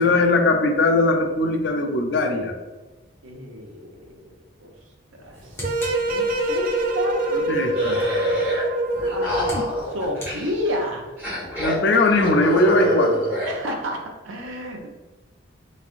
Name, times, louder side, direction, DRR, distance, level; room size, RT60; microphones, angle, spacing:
voice 1, 0.0-2.5 7.3-8.0 9.2-9.6 11.6-13.3, left 2 dB, 60° left, 4 dB, 0.4 m, -20 dB
voice 2, 3.2-4.7 5.2-5.6 6.1-7.2 9.1-9.5 9.8-11.1 13.4-14.9, equal, 80° right, 1 dB, 0.7 m, -31 dB
sound 1, 5.1-6.8 8.7-11.1, equal, 10° left, 0.8 m, -39 dB
sound 2, 5.6-9.9, right 1 dB, 45° right, 0.4 m, -24 dB
sound 3, 7.7-8.6 8.9-10.7 11.2-13.5, equal, 10° right, 1.3 m, -26 dB
3.5 x 3.2 x 2.4 m, 1.2 s
head